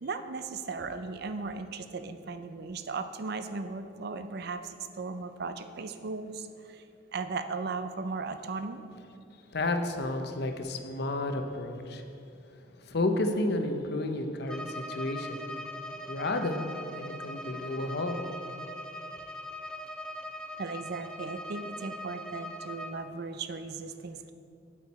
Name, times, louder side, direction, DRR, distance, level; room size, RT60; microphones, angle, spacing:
voice 1, 0.0-6.5 7.1-8.8 20.6-24.3, right 4 dB, 55° right, 10 dB, 0.5 m, -37 dB
voice 2, 9.5-12.0 12.9-15.4 16.1-16.6 17.0-18.2, left 2 dB, 60° left, 6 dB, 0.7 m, -31 dB
Bowed string instrument, 14.4-23.0, left 1 dB, 5° left, 0.5 m, -41 dB
8.8 x 8.6 x 4.2 m, 2.6 s
head